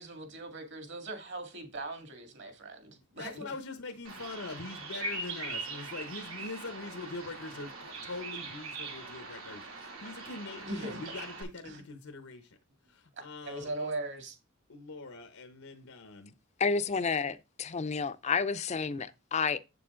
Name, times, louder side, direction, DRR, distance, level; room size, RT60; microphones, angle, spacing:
voice 1, 0.0-3.4 10.7-11.1 11.6-11.8 13.4-14.3, right 2 dB, 60° right, 2.1 m, -40 dB
voice 2, 2.9-12.6 12.9-13.9 14.7-16.4, left 3 dB, 90° left, 1.0 m, -43 dB
Bird vocalization bird call bird song, 4.0-11.4, right 3 dB, 80° right, 2.8 m, -41 dB
voice 3, 16.6-19.6, left 5 dB, 30° left, 0.5 m, -30 dB
7.7 x 6.8 x 3.7 m
head